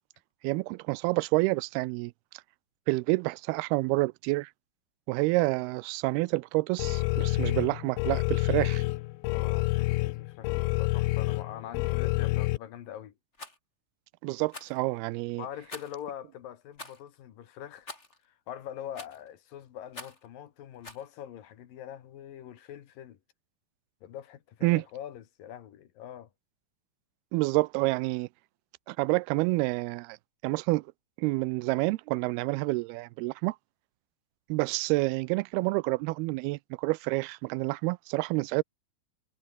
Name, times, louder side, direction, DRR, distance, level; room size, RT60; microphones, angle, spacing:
voice 1, 0.4-2.1 2.9-4.5 5.1-8.8 14.2-15.4 24.6-24.8 27.3-28.3 28.9-30.2 30.4-30.9 31.2-33.6 34.5-38.6, right 23 dB, 85° right, 2.5 m, -28 dB
sound 1, 6.8-12.6, left 20 dB, 80° left, 2.5 m, -28 dB
voice 2, 9.3-13.1 15.4-17.9 18.2-23.2 24.0-26.3, left 10 dB, 65° left, 3.2 m, -43 dB
Rattle, 13.3-13.6 14.5-14.8 15.7-16.0 16.7-17.0 17.9-18.2 18.9-19.3 19.9-20.3 20.8-21.1, left 2 dB, 15° left, 4.8 m, -44 dB
omnidirectional pair, 4.5 m